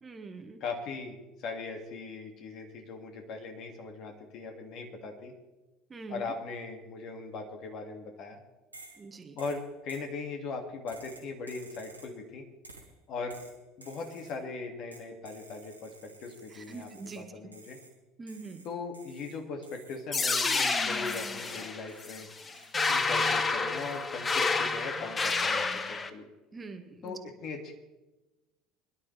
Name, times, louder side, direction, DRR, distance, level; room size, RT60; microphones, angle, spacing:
voice 1, 0.0-0.6 5.9-6.3 9.0-9.4 16.5-17.2 18.2-18.6 26.5-27.1, right 4 dB, 20° right, 6 dB, 1.5 m, -44 dB
voice 2, 0.6-5.3 6.1-8.4 9.4-12.4 13.1-13.4 13.8-17.8 18.6-22.3 22.9-26.2 27.0-27.7, left 4 dB, 50° left, 3 dB, 2.2 m, -39 dB
sound 1, 8.7-9.1 9.4-10.1 10.9-12.2 12.6-12.9 13.3-14.4 14.9-17.2 17.5-18.0 18.3-20.1 20.4-22.2 22.5-22.8, right 2 dB, 85° right, 2.0 m, -53 dB
sound 2, 20.1-26.1, left 4 dB, 25° left, 1.1 m, -29 dB
22.0 x 11.5 x 3.4 m, 1.1 s
figure-of-eight pair, 65°, 0 cm